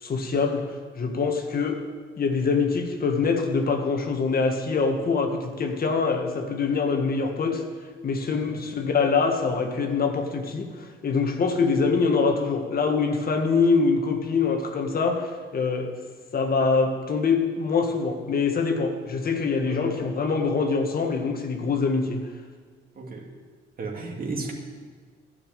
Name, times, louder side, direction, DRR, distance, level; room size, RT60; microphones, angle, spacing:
voice 1, 0.0-0.6 1.0-1.8 2.2-7.6 8.0-15.9 16.3-22.2, left 4 dB, 50° left, 4 dB, 1.7 m, -24 dB
voice 2, 22.9-23.3 23.8-24.5, right 3 dB, 45° right, 1 dB, 2.7 m, -34 dB
12.0 x 7.2 x 8.9 m, 1.5 s
cardioid pair, 90°, 20 cm